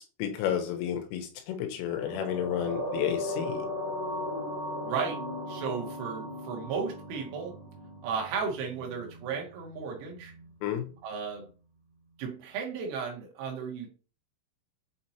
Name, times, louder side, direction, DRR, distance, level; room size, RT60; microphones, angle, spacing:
voice 1, 0.0-3.7 10.6-10.9, left 10 dB, 80° left, 3.5 m, -31 dB
sound 1, 1.9-10.5 10.8-10.9, left 1 dB, 45° right, 1.7 m, -37 dB
voice 2, 4.8-5.2 5.5-7.5 8.0-10.3 11.0-11.5 12.2-13.9, right 6 dB, 75° right, 3.6 m, -34 dB
8.5 x 4.3 x 2.9 m
omnidirectional pair, 5.9 m